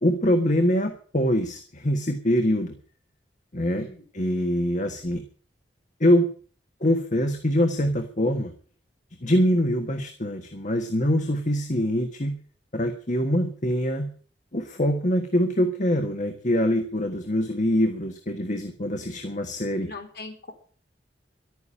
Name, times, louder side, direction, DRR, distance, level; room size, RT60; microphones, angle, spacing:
voice 1, 0.0-2.7 3.5-3.9 4.1-5.2 6.0-6.3 6.8-8.5 9.2-12.4 12.7-14.1 14.5-19.9, equal, 45° left, 6 dB, 1.6 m, -24 dB
voice 2, 3.8-4.1 19.8-20.5, left 3 dB, 65° left, 4 dB, 4.0 m, -40 dB
12.5 x 9.6 x 8.6 m, 0.43 s
head